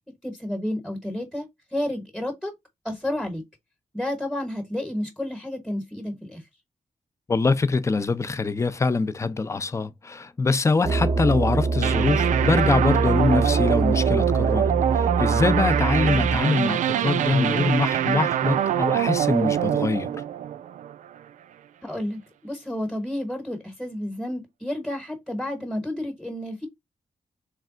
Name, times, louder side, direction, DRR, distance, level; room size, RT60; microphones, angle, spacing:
voice 1, 0.2-2.5 2.8-3.4 3.9-6.4 21.8-26.7, left 1 dB, ahead, 1.0 m, -31 dB
voice 2, 7.3-20.2, left 3 dB, 25° left, 0.5 m, -24 dB
sound 1, 10.8-16.4, right 3 dB, 40° right, 0.6 m, -24 dB
sound 2, 11.8-21.2, right 10 dB, 85° right, 0.4 m, -24 dB
3.3 x 3.3 x 3.7 m
wide cardioid pair, 105°, 13 cm